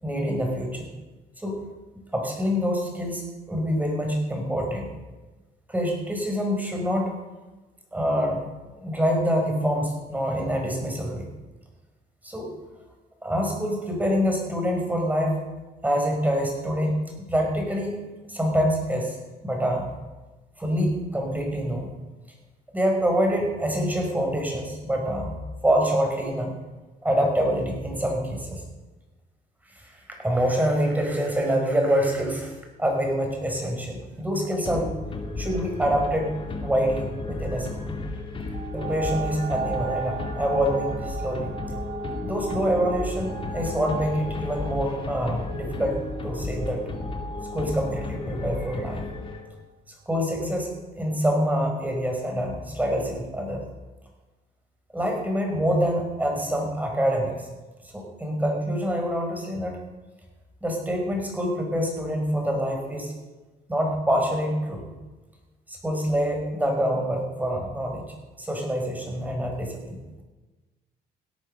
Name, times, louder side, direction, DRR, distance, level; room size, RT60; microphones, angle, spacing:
voice 1, 0.0-0.9 1.4-1.6 2.1-4.9 5.7-7.2 7.9-8.5 8.8-11.3 12.2-12.5 13.2-15.4 15.8-17.0 17.3-18.0 18.3-19.2 19.4-19.9 20.6-21.9 22.7-26.5 27.0-28.6 29.8-32.5 32.8-34.9 35.4-38.0 38.7-41.5 42.2-46.9 47.5-49.0 50.1-53.6 54.9-57.4 57.9-59.8 60.6-63.2 63.7-64.9 65.7-68.1 68.4-70.0, equal, 10° right, 1 dB, 5.0 m, -26 dB
sound 1, 34.6-49.7, left 2 dB, 30° left, 2.6 m, -33 dB
sound 2, 38.5-47.8 48.4-48.5, right 8 dB, 60° right, 0.9 m, -38 dB
17.5 x 9.3 x 6.7 m, 1.2 s
cardioid pair, 110°, 17 cm